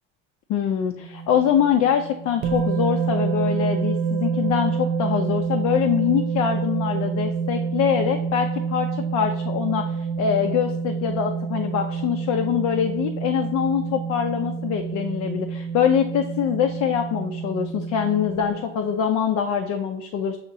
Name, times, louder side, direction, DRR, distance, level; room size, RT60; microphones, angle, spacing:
voice 1, 0.5-20.4, left 8 dB, 55° left, 5 dB, 0.6 m, -24 dB
sound 1, 1.0-18.9, right 5 dB, 40° right, 0.4 m, -28 dB
6.8 x 2.8 x 2.7 m, 0.85 s
supercardioid pair, 110°, 33 cm